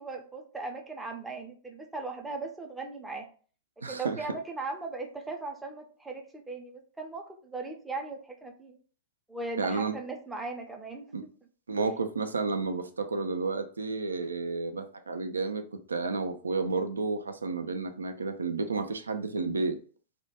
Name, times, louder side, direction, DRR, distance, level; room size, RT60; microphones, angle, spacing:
voice 1, 0.0-3.3 3.9-8.8 9.3-11.1, right 3 dB, 10° right, 3 dB, 0.5 m, -38 dB
voice 2, 3.8-4.2 9.6-10.0 11.1-11.2 11.7-15.6 15.9-19.8, right 3 dB, 80° right, 8 dB, 0.3 m, -31 dB
2.2 x 2.1 x 2.8 m, 0.41 s
figure-of-eight pair, 100°, 0 cm